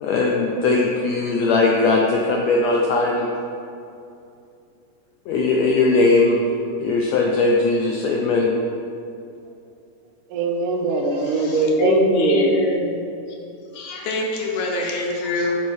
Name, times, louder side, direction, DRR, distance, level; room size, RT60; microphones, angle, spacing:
voice 1, 0.0-3.3 5.3-6.4 6.8-8.5, left 3 dB, 90° left, -1 dB, 1.5 m, -19 dB
voice 2, 10.3-12.5, right 3 dB, 80° right, 3 dB, 2.0 m, -21 dB
voice 3, 11.3-13.0 13.7-15.6, left 2 dB, 75° left, -1 dB, 2.0 m, -23 dB
7.2 x 4.6 x 4.7 m, 2.6 s
omnidirectional pair, 3.8 m